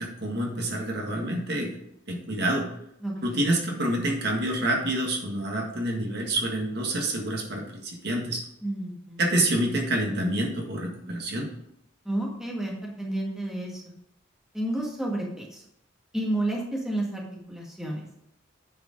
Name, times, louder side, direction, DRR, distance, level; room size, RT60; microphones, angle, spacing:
voice 1, 0.0-1.8 2.1-2.7 3.2-8.4 9.2-11.5, right 1 dB, 55° right, 0 dB, 1.7 m, -27 dB
voice 2, 3.0-3.4 8.6-9.2 12.0-13.8 14.5-15.6 16.1-18.1, right 1 dB, 5° right, -3 dB, 1.7 m, -31 dB
9.4 x 5.0 x 5.2 m, 0.75 s
head